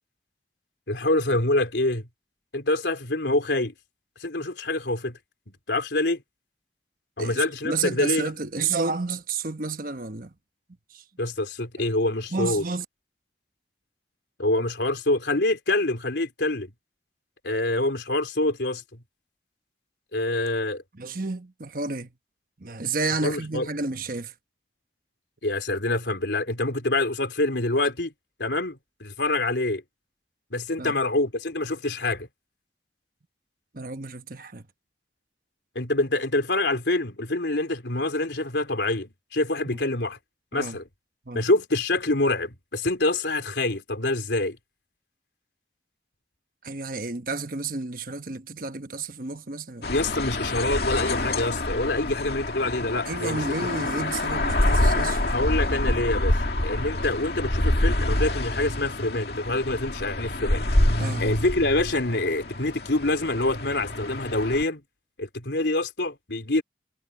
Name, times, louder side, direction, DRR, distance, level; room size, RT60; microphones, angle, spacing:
voice 1, 0.9-2.1 2.5-3.7 4.2-5.2 5.5-6.2 7.2-8.3 11.2-12.6 14.4-16.7 17.4-19.0 20.1-20.8 23.2-23.7 25.4-28.1 28.4-29.8 30.5-32.3 35.8-40.2 40.5-40.8 41.3-44.6 49.9-53.4 55.3-60.6 61.2-64.8 65.2-66.6, left 2 dB, 80° left, 3.4 m, -26 dB
voice 2, 7.2-10.3 10.9-11.0 11.8-11.9 12.3-12.8 20.9-22.1 22.6-24.3 30.8-31.0 33.7-34.6 39.7-39.8 40.5-40.8 41.3-41.4 46.6-49.9 53.1-55.4 61.0-61.3, right 4 dB, 50° right, 1.2 m, -31 dB
sound 1, 49.8-64.6, left 1 dB, 60° left, 2.4 m, -26 dB
head